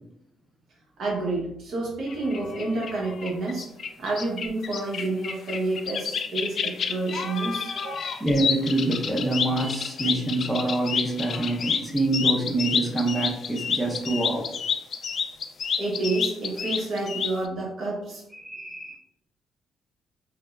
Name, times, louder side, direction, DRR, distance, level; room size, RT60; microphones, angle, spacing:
voice 1, 1.0-3.7 4.0-8.2 15.8-18.2, right 2 dB, 70° right, -2 dB, 0.9 m, -29 dB
sound 1, 2.1-17.5, left 6 dB, 55° left, 0.3 m, -30 dB
voice 2, 8.2-14.5 18.3-19.0, right 2 dB, 15° right, -2 dB, 0.6 m, -26 dB
3.4 x 2.0 x 2.3 m, 0.77 s
cardioid pair, 90°, 0 cm